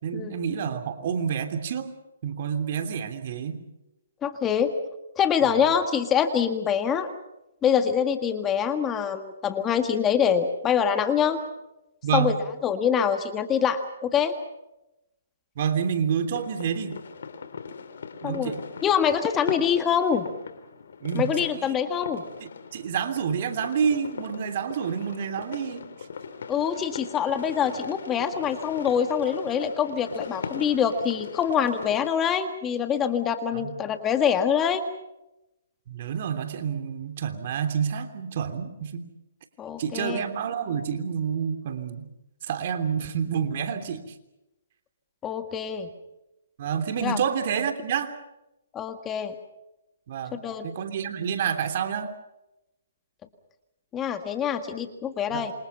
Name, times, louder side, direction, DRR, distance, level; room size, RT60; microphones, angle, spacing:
voice 1, 0.0-1.9 2.2-3.6 5.5-5.7 12.0-12.3 15.6-17.0 18.2-18.6 21.0-21.7 22.4-25.9 33.5-33.7 35.9-39.0 39.8-42.1 42.4-44.1 46.6-48.1 50.1-52.1 55.3-55.5, right 7 dB, 50° right, 8 dB, 3.1 m, -28 dB
voice 2, 4.2-4.7 5.1-7.1 7.6-11.4 12.1-12.3 12.6-14.3 18.2-18.5 18.8-20.3 21.1-22.2 26.5-34.8 39.6-40.2 45.2-45.9 47.0-47.2 48.7-49.3 50.3-50.7 53.9-55.5, left 8 dB, 15° left, 8 dB, 1.7 m, -25 dB
sound 1, 16.3-32.1, left 5 dB, 70° left, 3.1 m, -39 dB
28.0 x 26.0 x 5.7 m, 0.91 s
hypercardioid pair, 150°, 0 cm